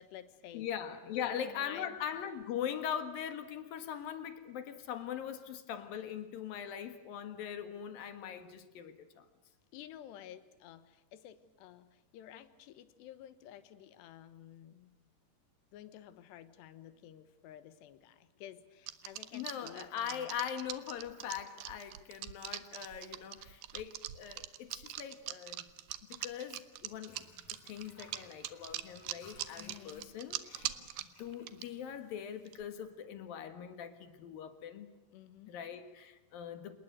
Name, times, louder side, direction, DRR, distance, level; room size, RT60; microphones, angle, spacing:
voice 1, 0.0-0.7 1.0-2.0 9.7-14.9 15.7-20.3 21.2-21.3 29.5-30.1 35.1-35.6, left 10 dB, 90° left, 13 dB, 3.3 m, -51 dB
voice 2, 0.5-9.2 19.3-25.7 26.1-27.3 27.6-30.7 31.2-34.9 35.5-36.8, left 9 dB, 65° left, 9 dB, 3.1 m, -41 dB
sound 1, 18.9-31.6 32.5-32.6, right 14 dB, 75° right, 2.9 m, -42 dB
Water / Sink (filling or washing), 26.7-32.6 32.9-33.0, left 3 dB, 45° left, 5.3 m, -61 dB
28.0 x 20.0 x 8.0 m, 1.1 s
omnidirectional pair, 4.9 m